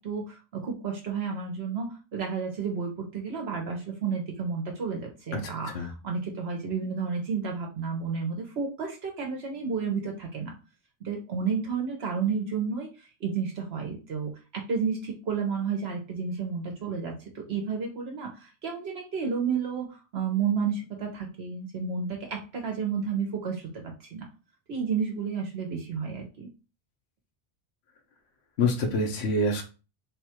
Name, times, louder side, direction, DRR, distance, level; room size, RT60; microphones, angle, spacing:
voice 1, 0.0-10.5 11.0-23.7 24.1-24.3 24.7-26.5, right 6 dB, 70° right, 1 dB, 1.1 m, -31 dB
voice 2, 5.3-5.9 28.6-29.6, left 2 dB, 75° left, 3 dB, 1.1 m, -27 dB
3.6 x 2.3 x 4.4 m, 0.31 s
omnidirectional pair, 1.1 m